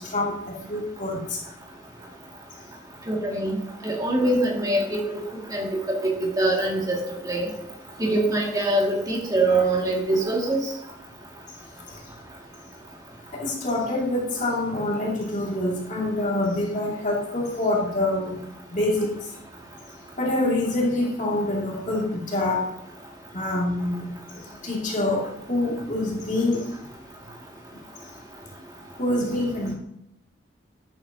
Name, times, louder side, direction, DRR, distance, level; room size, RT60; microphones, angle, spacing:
voice 1, 0.0-1.4 13.3-18.4 18.7-19.1 20.2-22.7 23.3-24.1 24.6-26.7 29.0-29.7, left 2 dB, 40° left, -3 dB, 2.6 m, -26 dB
voice 2, 3.1-3.6 3.8-5.0 5.5-7.0 7.2-7.5 8.0-10.7, right 2 dB, 20° right, -2 dB, 2.3 m, -23 dB
12.0 x 8.9 x 2.9 m, 0.80 s
head